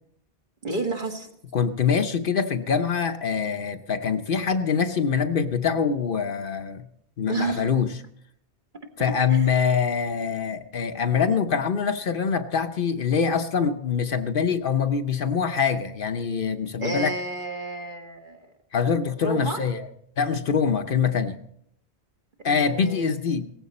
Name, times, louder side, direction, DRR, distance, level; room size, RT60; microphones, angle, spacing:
voice 1, 0.6-1.3 7.3-7.7 9.3-9.5 16.8-18.5 19.2-19.6 22.4-23.2, right 3 dB, 50° right, 3 dB, 1.8 m, -31 dB
voice 2, 1.5-6.8 7.2-8.0 9.0-17.1 18.7-19.9 20.2-21.4 22.4-23.5, left 6 dB, 60° left, 8 dB, 0.9 m, -24 dB
17.5 x 15.0 x 4.2 m, 0.72 s
omnidirectional pair, 1.1 m